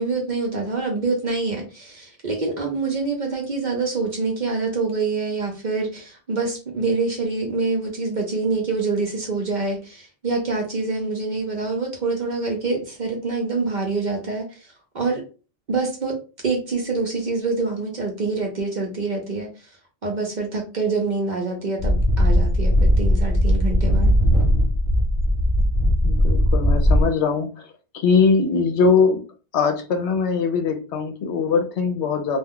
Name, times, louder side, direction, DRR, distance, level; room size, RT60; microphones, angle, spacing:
voice 1, 0.0-14.7 14.9-15.2 15.7-16.2 16.4-19.5 20.0-24.2, right 3 dB, 50° right, 1 dB, 0.7 m, -26 dB
sound 1, 21.8-27.1, equal, 30° left, 1.0 m, -18 dB
voice 2, 26.0-29.2 29.5-32.4, left 5 dB, 75° left, 5 dB, 0.9 m, -21 dB
2.3 x 2.3 x 3.5 m, 0.35 s
omnidirectional pair, 1.2 m